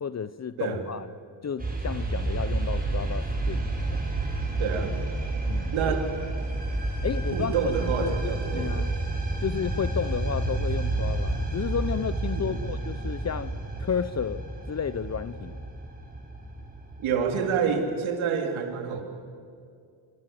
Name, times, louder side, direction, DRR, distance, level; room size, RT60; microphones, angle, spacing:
voice 1, 0.0-1.1 1.4-3.6 3.9-4.1 5.5-6.0 7.0-7.5 7.8-8.9 9.4-13.5 13.8-15.6, left 7 dB, 35° left, 0.8 m, -32 dB
sound 1, 1.6-17.3, right 2 dB, 20° right, 6.7 m, -30 dB
voice 2, 4.6-4.9 5.7-6.1 7.3-8.8 12.3-12.7 17.0-19.0, right 6 dB, 85° right, 3.7 m, -28 dB
27.5 x 24.5 x 7.8 m
cardioid pair, 75°, 47 cm